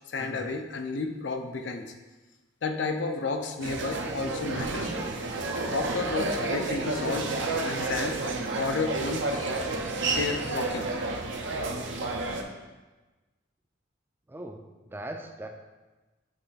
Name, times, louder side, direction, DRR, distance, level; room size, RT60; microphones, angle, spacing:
voice 1, 0.1-1.9 2.6-4.9 5.7-7.3 7.6-9.5 10.0-10.9, left 3 dB, 65° left, 6 dB, 0.5 m, -32 dB
sound 1, 3.6-12.4, right 2 dB, 70° right, 0.6 m, -30 dB
voice 2, 14.3-14.6 14.9-15.5, right 1 dB, 10° right, 4 dB, 0.4 m, -39 dB
7.9 x 3.3 x 3.9 m, 1.2 s
head